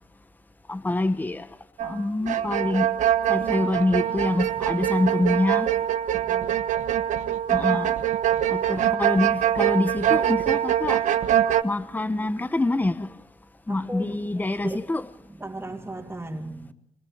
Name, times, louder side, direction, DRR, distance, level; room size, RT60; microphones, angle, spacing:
voice 1, 0.7-1.5 1.8-2.9 3.3-5.7 7.5-8.0 8.5-11.0 11.4-13.1 13.7-15.0, left 2 dB, 15° left, 1.2 m, -26 dB
sound 1, 1.8-2.0 2.3-11.6, right 11 dB, 80° right, 1.3 m, -24 dB
voice 2, 6.1-6.9 13.7-14.9 15.3-16.7, right 2 dB, 15° right, 2.9 m, -37 dB
26.0 x 23.0 x 8.9 m
cardioid pair, 100°, 12 cm